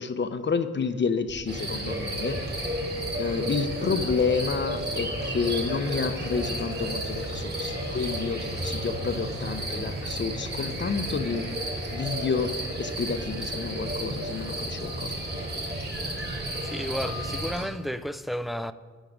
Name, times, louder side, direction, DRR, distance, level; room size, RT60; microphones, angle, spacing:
voice 1, 0.0-2.4 3.2-11.5 11.9-15.1, left 5 dB, 40° left, 0.7 m, -29 dB
sound 1, 1.3-12.4, equal, 80° right, 3.0 m, -47 dB
sound 2, 1.5-17.6, right 1 dB, 35° right, 2.1 m, -32 dB
voice 2, 16.7-18.7, equal, ahead, 0.3 m, -32 dB
12.5 x 5.0 x 5.0 m
cardioid pair, 75°, 29 cm